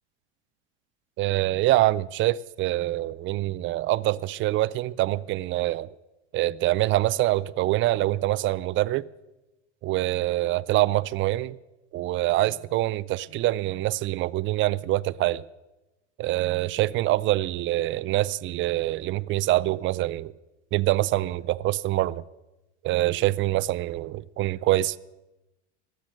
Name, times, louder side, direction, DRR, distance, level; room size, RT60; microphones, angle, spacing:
voice 1, 1.2-5.9 6.3-9.1 9.8-11.6 11.9-15.4 16.2-20.3 20.7-22.2 22.8-25.0, right 16 dB, 35° right, 0.4 m, -25 dB
19.5 x 7.9 x 6.5 m
hypercardioid pair, 95°, 35 cm